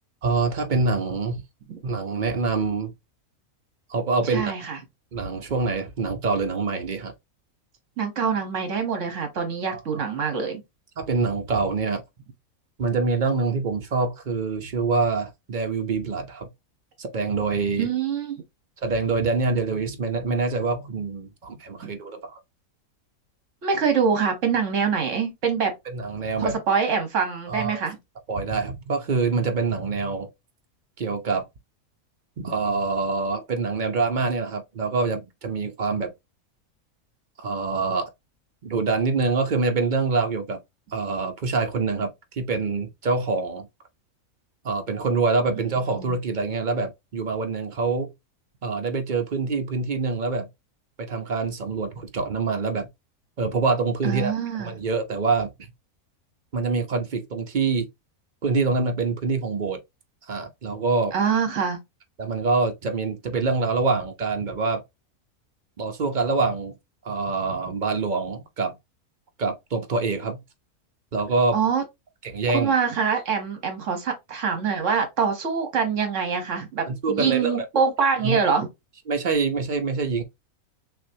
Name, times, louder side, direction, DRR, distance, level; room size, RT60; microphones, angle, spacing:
voice 1, 0.2-1.4 1.8-2.9 3.9-4.5 5.1-7.1 9.7-10.0 11.0-12.0 12.8-16.5 17.0-17.9 18.8-22.4 25.9-26.6 27.5-27.8 28.3-30.3 31.0-31.4 32.4-36.1 37.4-38.1 38.6-40.6 40.9-43.7 44.6-48.1 48.6-50.5 51.0-52.9 53.4-54.3 54.6-55.5 56.5-57.9 58.4-59.8 60.3-61.1 62.2-64.8 65.8-66.7 67.0-68.8 69.4-70.4 71.1-71.6 72.2-72.7 76.9-77.6 78.2-78.4 79.1-80.2, right 4 dB, 45° right, 0.7 m, -25 dB
voice 2, 4.2-4.8 8.0-10.6 17.8-18.4 21.8-21.9 23.6-25.7 26.4-28.0 45.9-46.2 54.0-54.7 61.1-61.8 71.5-71.8 72.5-78.7, right 6 dB, 60° right, 1.5 m, -25 dB
6.1 x 2.4 x 2.7 m
omnidirectional pair, 1.5 m